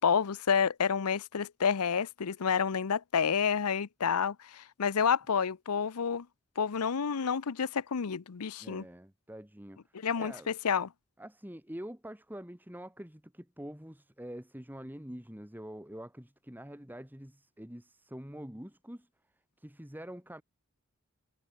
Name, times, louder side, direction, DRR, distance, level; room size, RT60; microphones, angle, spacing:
voice 1, 0.0-6.3 6.6-8.8 9.9-10.9, left 6 dB, 85° left, 0.7 m, -29 dB
voice 2, 8.6-10.5 11.2-19.1 19.6-20.4, equal, 10° right, 2.2 m, -45 dB
head